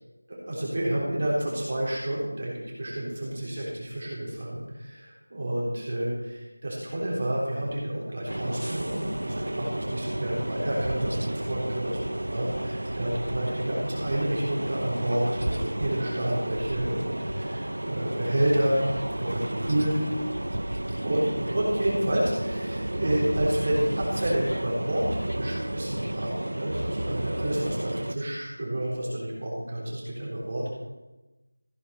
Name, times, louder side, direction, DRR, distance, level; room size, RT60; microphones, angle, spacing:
voice 1, 0.3-12.0 12.3-18.8 19.2-20.0 21.0-30.7, right 1 dB, 25° right, -5 dB, 3.5 m, -29 dB
sound 1, 8.3-28.1, right 1 dB, 85° right, 0.5 m, -32 dB
15.0 x 9.8 x 4.3 m, 1.1 s
figure-of-eight pair, 180°, 0 cm